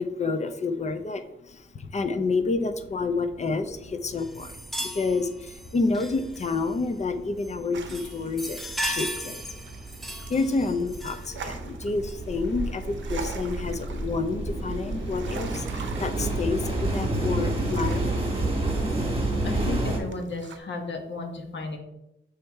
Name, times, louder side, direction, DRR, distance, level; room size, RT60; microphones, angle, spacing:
voice 1, 0.0-9.6 10.2-18.1, left 3 dB, 35° left, 10 dB, 0.5 m, -29 dB
sound 1, 3.3-3.4 3.7-4.7 5.0-20.0, right 2 dB, 30° right, 1.4 m, -30 dB
sound 2, 4.2-6.9 7.4-7.6 7.9-11.4 12.0-12.2 13.1-13.2, equal, ahead, 0.7 m, -37 dB
sound 3, 7.7-20.6, right 5 dB, 75° right, 0.6 m, -45 dB
voice 2, 19.4-21.8, left 3 dB, 65° left, 3 dB, 1.1 m, -34 dB
6.9 x 3.4 x 4.5 m, 0.87 s
wide cardioid pair, 145°, 20 cm